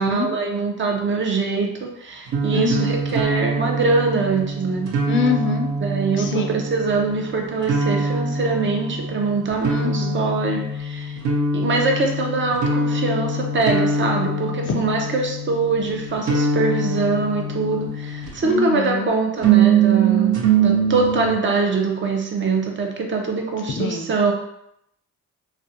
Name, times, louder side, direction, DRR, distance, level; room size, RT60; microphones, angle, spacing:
voice 1, 0.0-4.9 5.8-11.2 11.5-24.3, right 3 dB, 40° right, 2 dB, 0.6 m, -23 dB
sound 1, 2.3-18.6 19.4-21.3, right 4 dB, 75° right, 0.7 m, -23 dB
voice 2, 2.5-3.0 5.1-5.7 6.2-6.5 9.7-10.2 14.7-14.9 18.4-19.1 23.8-24.1, left 4 dB, 40° left, 3 dB, 0.5 m, -24 dB
2.4 x 2.1 x 2.7 m, 0.77 s
cardioid pair, 90°, 30 cm